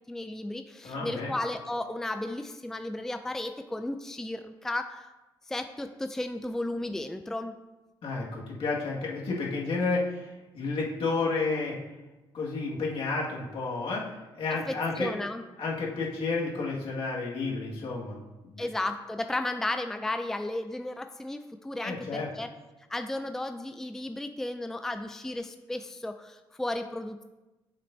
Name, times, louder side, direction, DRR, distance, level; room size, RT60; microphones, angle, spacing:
voice 1, 0.1-5.1 5.5-7.5 14.7-15.4 18.6-22.5 22.9-27.2, left 1 dB, 5° left, 7 dB, 0.4 m, -34 dB
voice 2, 0.8-1.3 8.0-11.8 12.3-15.1 15.6-18.6 21.8-22.3, left 3 dB, 70° left, -3 dB, 1.9 m, -31 dB
7.5 x 7.3 x 2.7 m, 1.1 s
cardioid pair, 80°, 10 cm